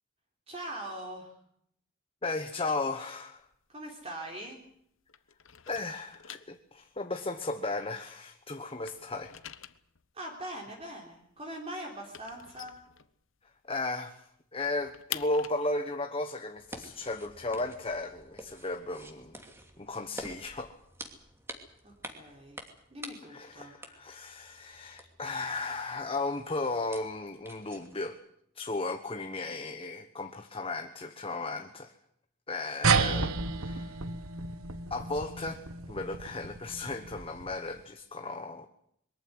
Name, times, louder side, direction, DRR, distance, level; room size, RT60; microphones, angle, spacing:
voice 1, 0.5-1.3 3.7-4.6 10.1-12.8 21.8-22.6 22.9-23.7, right 1 dB, 30° right, 0 dB, 3.6 m, -42 dB
voice 2, 2.2-3.5 5.7-9.3 13.6-19.4 19.8-20.7 23.3-28.2 28.5-31.9 32.5-34.0 34.9-38.7, left 2 dB, 25° left, 6 dB, 1.2 m, -35 dB
sound 1, 3.4-4.8 5.1-8.3 8.6-13.6 13.9-14.0 14.3-18.1, left 11 dB, 65° left, 1.0 m, -46 dB
sound 2, 16.5-28.1, right 1 dB, 10° right, 2.8 m, -49 dB
sound 3, 32.8-37.7, right 4 dB, 85° right, 1.4 m, -31 dB
22.5 x 14.5 x 9.6 m, 0.71 s
head